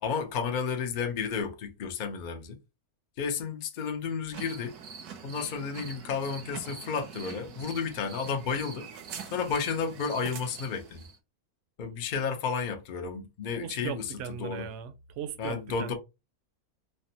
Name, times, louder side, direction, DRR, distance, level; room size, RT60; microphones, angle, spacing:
voice 1, 0.0-2.6 3.2-4.7 5.2-8.9 9.3-11.0 11.8-14.0 14.4-14.6 15.4-15.9, left 6 dB, 85° left, 0.4 m, -32 dB
sound 1, 4.3-11.2, right 6 dB, 85° right, 1.2 m, -44 dB
voice 2, 13.6-15.9, right 8 dB, 70° right, 0.7 m, -38 dB
3.3 x 2.1 x 2.7 m
omnidirectional pair, 1.6 m